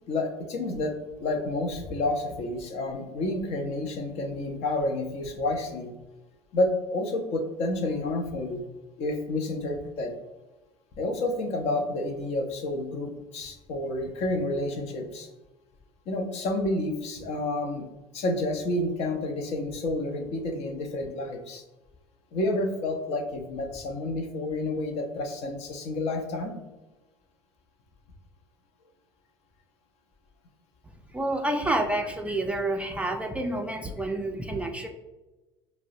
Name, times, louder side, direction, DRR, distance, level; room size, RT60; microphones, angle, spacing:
voice 1, 0.1-5.9 6.5-8.6 9.0-10.1 11.0-15.3 16.1-17.9 18.1-21.6 22.3-26.6, left 2 dB, 50° left, 5 dB, 0.6 m, -29 dB
voice 2, 31.1-34.9, right 1 dB, 10° right, 2 dB, 0.4 m, -29 dB
4.6 x 2.0 x 2.6 m, 1.1 s
figure-of-eight pair, 70°, 14 cm